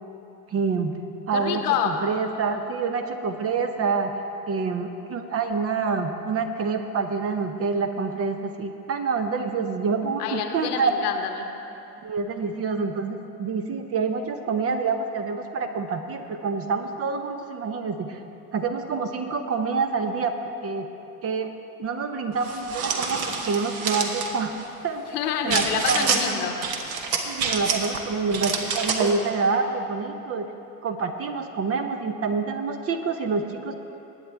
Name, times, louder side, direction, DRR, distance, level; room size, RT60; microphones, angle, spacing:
voice 1, 0.5-1.0 1.3-4.1 4.5-10.9 12.0-18.2 18.5-20.9 21.2-21.5 21.8-24.5 24.8-25.0 25.4-26.4 27.2-30.5 30.8-33.8, right 4 dB, 30° right, 7 dB, 0.8 m, -27 dB
voice 2, 1.3-2.0 10.2-11.5 25.1-26.7, left 8 dB, 65° left, 5 dB, 1.2 m, -27 dB
sound 1, 22.4-24.3 25.5-26.2 26.6-28.0 28.3-29.1, right 5 dB, 50° right, 1.4 m, -27 dB
20.0 x 8.7 x 3.5 m, 2.8 s
figure-of-eight pair, 70°, 50 cm